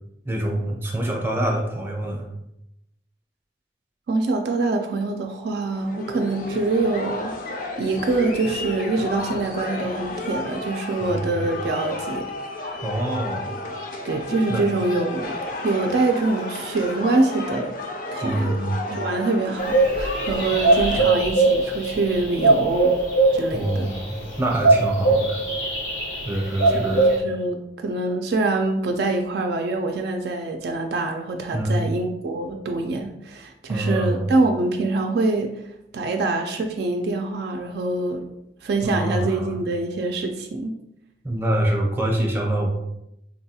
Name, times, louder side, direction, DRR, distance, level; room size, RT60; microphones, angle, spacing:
voice 1, 0.2-2.2 11.0-11.5 12.8-13.5 14.5-14.6 18.2-18.8 21.0-21.1 23.5-25.4 26.2-27.1 31.5-31.8 33.7-34.3 38.8-39.6 41.2-42.7, right 1 dB, 10° right, 0 dB, 0.5 m, -25 dB
voice 2, 4.1-7.3 7.8-12.3 12.6-12.8 14.0-15.3 15.6-17.8 18.1-18.6 18.9-22.9 23.3-23.9 26.7-35.5 35.9-38.3 38.6-40.7, right 3 dB, 60° right, 4 dB, 0.3 m, -25 dB
sound 1, 5.7-21.0, left 2 dB, 50° left, 0.4 m, -32 dB
sound 2, 19.6-27.2, right 3 dB, 90° left, 1.0 m, -21 dB
4.0 x 2.3 x 2.7 m, 0.83 s
head